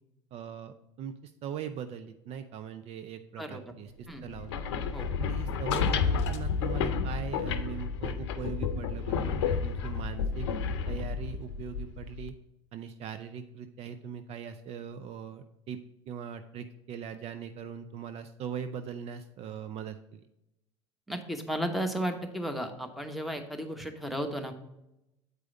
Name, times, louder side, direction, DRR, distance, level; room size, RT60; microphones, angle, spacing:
voice 1, 0.3-4.6 5.2-10.5 10.9-12.3 12.7-15.8 16.1-20.2, right 8 dB, 45° right, 9 dB, 0.5 m, -40 dB
sound 1, 4.3-12.3, left 6 dB, 75° left, 0.7 m, -31 dB
voice 2, 21.1-24.5, equal, ahead, 5 dB, 1.1 m, -34 dB
8.2 x 4.8 x 3.9 m, 0.87 s
hypercardioid pair, 80°, 14 cm